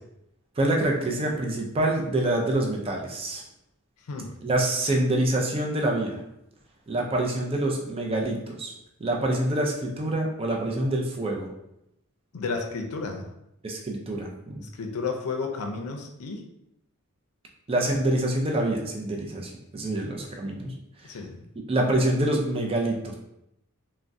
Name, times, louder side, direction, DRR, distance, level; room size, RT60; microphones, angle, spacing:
voice 1, 0.6-3.4 4.4-6.2 6.9-8.7 9.0-11.5 13.6-14.6 17.7-20.7 21.0-21.2 21.7-23.1, right 1 dB, 25° right, 0 dB, 0.4 m, -26 dB
voice 2, 12.3-13.3 14.7-16.4 21.0-21.4, left 4 dB, 80° left, 3 dB, 0.5 m, -32 dB
3.5 x 2.1 x 2.5 m, 0.81 s
head